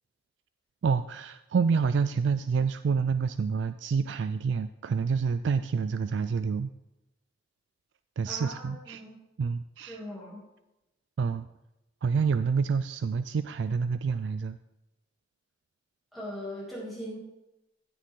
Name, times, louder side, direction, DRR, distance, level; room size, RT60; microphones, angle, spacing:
voice 1, 0.8-6.7 8.2-9.0 9.4-10.0 11.2-11.5 12.0-14.6, right 5 dB, 85° right, 12 dB, 0.4 m, -28 dB
voice 2, 8.3-9.2 9.9-10.4 16.1-17.2, equal, ahead, -8 dB, 2.7 m, -40 dB
15.0 x 6.6 x 3.8 m, 0.93 s
head